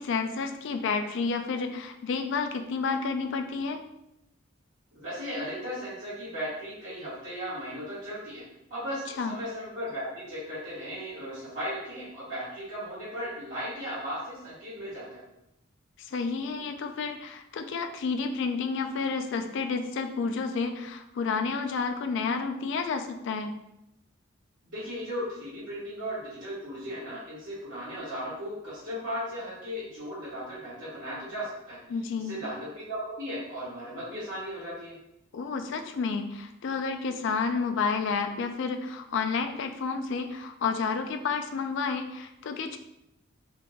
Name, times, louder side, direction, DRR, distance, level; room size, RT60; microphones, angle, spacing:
voice 1, 0.0-3.8 9.2-9.4 16.0-23.6 31.9-32.4 35.3-42.8, left 5 dB, 60° left, 7 dB, 0.3 m, -30 dB
voice 2, 4.9-8.4 8.7-15.2 24.6-31.8 32.2-34.9, equal, 65° right, -13 dB, 1.4 m, -36 dB
3.5 x 2.2 x 3.9 m, 0.86 s
head